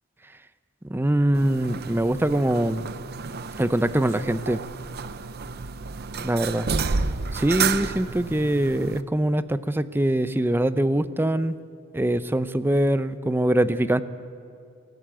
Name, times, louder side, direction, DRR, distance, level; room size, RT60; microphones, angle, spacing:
voice 1, 0.8-2.9 3.6-4.6 6.2-6.6 7.3-11.5 11.9-14.0, right 1 dB, 10° right, 13 dB, 0.5 m, -23 dB
sound 1, 1.3-9.0, right 5 dB, 50° right, 0.7 m, -31 dB
24.0 x 13.0 x 9.1 m, 2.4 s
head